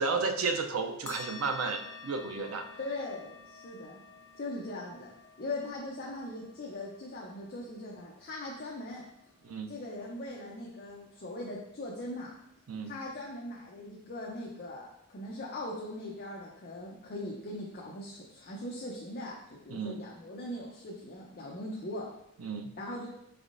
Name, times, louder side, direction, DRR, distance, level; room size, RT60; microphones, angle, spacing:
voice 1, 0.0-2.7 9.4-9.7 12.7-13.0 19.7-20.0 22.4-22.7, right 4 dB, 80° right, 6 dB, 0.5 m, -32 dB
sound 1, 1.1-10.0, left 4 dB, 80° left, 1.0 m, -51 dB
voice 2, 2.8-4.0 4.3-5.1 5.4-9.1 9.7-12.3 12.9-22.0 22.8-23.1, left 1 dB, 45° left, -3 dB, 0.6 m, -40 dB
5.2 x 3.4 x 2.5 m, 0.79 s
head